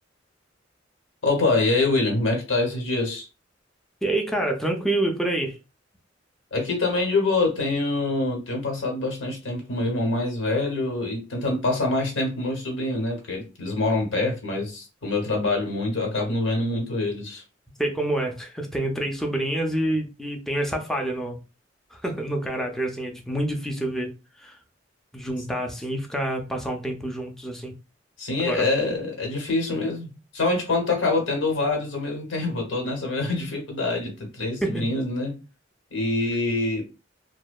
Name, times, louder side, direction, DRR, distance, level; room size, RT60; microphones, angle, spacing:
voice 1, 1.2-3.3 6.5-17.4 28.2-35.4 35.9-36.8, left 2 dB, 90° left, 1.1 m, -25 dB
voice 2, 4.0-5.6 17.8-21.4 21.9-24.1 24.4-24.6 25.1-27.7 28.4-28.7 34.6-34.8, right 1 dB, ahead, 0.4 m, -27 dB
2.7 x 2.1 x 2.2 m
head